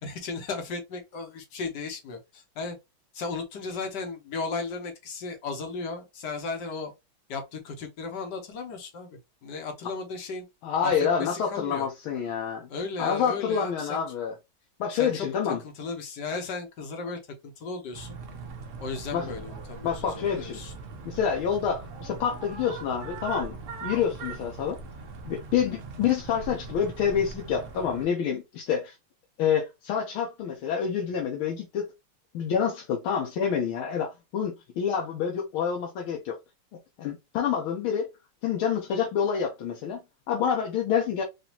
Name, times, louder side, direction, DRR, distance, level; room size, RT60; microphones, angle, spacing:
voice 1, 0.0-2.8 3.1-6.9 7.3-10.4 10.8-11.9 12.7-14.0 14.9-15.3 15.6-18.2 18.8-20.7, left 4 dB, 60° left, 1.5 m, -35 dB
voice 2, 10.6-12.7 13.0-14.3 14.8-15.6 19.1-19.3 19.8-20.6 21.0-23.6 23.8-24.8 25.3-28.9 29.4-31.9 32.3-36.4 37.0-38.1 38.4-40.0 40.3-41.2, left 7 dB, 75° left, 1.6 m, -27 dB
sound 1, 17.9-28.1, right 4 dB, 75° right, 0.6 m, -40 dB
5.0 x 2.7 x 2.8 m
omnidirectional pair, 2.4 m